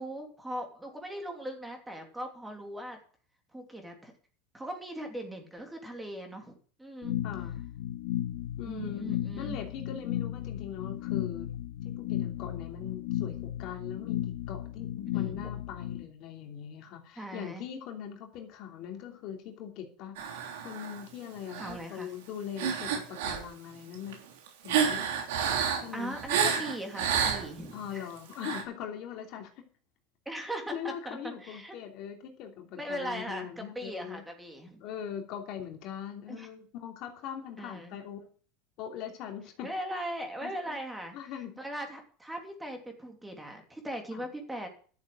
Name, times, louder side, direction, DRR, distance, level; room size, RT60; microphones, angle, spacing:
voice 1, 0.0-3.0 3.5-4.1 4.5-6.5 6.8-7.2 8.6-9.6 15.1-15.5 17.2-17.6 21.6-22.1 25.9-28.0 30.2-31.8 32.7-34.8 36.3-36.5 37.6-38.0 39.6-41.1 41.6-44.7, right 1 dB, 5° right, 4 dB, 3.0 m, -39 dB
sound 1, 7.0-16.0, left 12 dB, 75° left, 2.4 m, -35 dB
voice 2, 7.2-7.6 8.6-11.5 11.8-24.2 24.6-25.1 25.7-26.2 27.7-29.7 30.7-34.2 34.8-38.3 38.8-39.7 40.4-40.8 41.1-41.5 44.1-44.2, left 9 dB, 55° left, 3 dB, 3.0 m, -41 dB
sound 2, 20.2-21.0 21.5-21.8 22.6-23.5 23.9-27.7 28.3-28.6, right 7 dB, 85° right, 3.3 m, -30 dB
12.0 x 7.2 x 7.7 m, 0.42 s
supercardioid pair, 120°, 0 cm